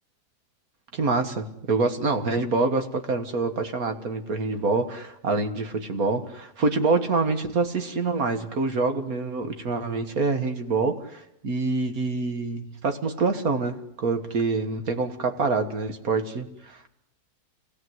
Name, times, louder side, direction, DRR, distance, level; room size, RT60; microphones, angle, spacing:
voice 1, 0.9-16.9, right 3 dB, 60° right, 7 dB, 2.1 m, -26 dB
27.0 x 17.5 x 8.0 m, 0.79 s
omnidirectional pair, 1.7 m